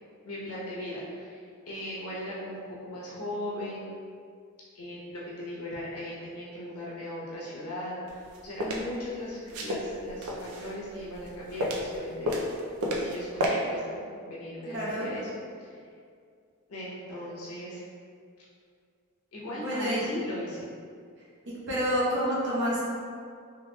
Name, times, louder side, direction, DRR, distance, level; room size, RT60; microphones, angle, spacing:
voice 1, 0.2-3.9 4.7-12.4 13.0-15.8 16.7-17.8 19.3-20.7, left 1 dB, 80° left, -7 dB, 0.9 m, -38 dB
sound 1, 8.1-8.8 9.5-10.8 11.1-12.0 12.2-13.1 13.4-13.5, equal, 75° right, 0.4 m, -30 dB
voice 2, 14.7-15.1 19.6-20.0 21.7-22.8, equal, 55° right, -7 dB, 0.8 m, -28 dB
3.3 x 2.9 x 2.2 m, 2.2 s
head